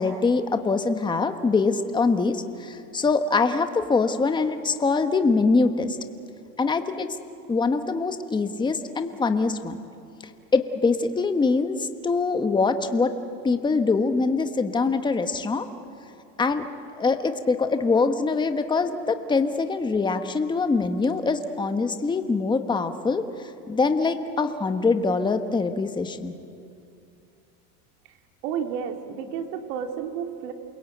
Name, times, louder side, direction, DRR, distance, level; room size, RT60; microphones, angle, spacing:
voice 1, 0.0-6.0 6.6-7.2 7.5-9.8 10.5-13.1 13.4-15.7 16.4-16.7 17.0-26.3, left 4 dB, 10° left, 8 dB, 1.2 m, -23 dB
voice 2, 28.4-30.5, right 7 dB, 65° right, 4 dB, 3.2 m, -31 dB
28.5 x 21.5 x 9.2 m, 2.5 s
supercardioid pair, 135°, 47 cm